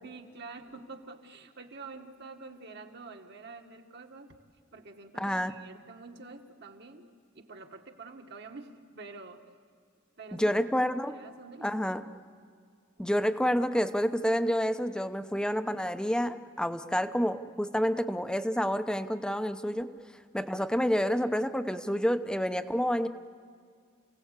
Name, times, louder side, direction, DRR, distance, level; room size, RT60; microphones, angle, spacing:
voice 1, 0.0-4.3 4.7-7.1 7.3-9.4 10.2-10.6 11.1-12.1 20.6-20.7 20.9-21.0, right 3 dB, 55° right, 4 dB, 1.6 m, -47 dB
voice 2, 5.2-5.5 10.3-11.2 11.6-12.0 13.0-19.9 20.3-23.1, equal, 5° left, 9 dB, 0.7 m, -28 dB
29.0 x 17.5 x 8.2 m, 2.1 s
head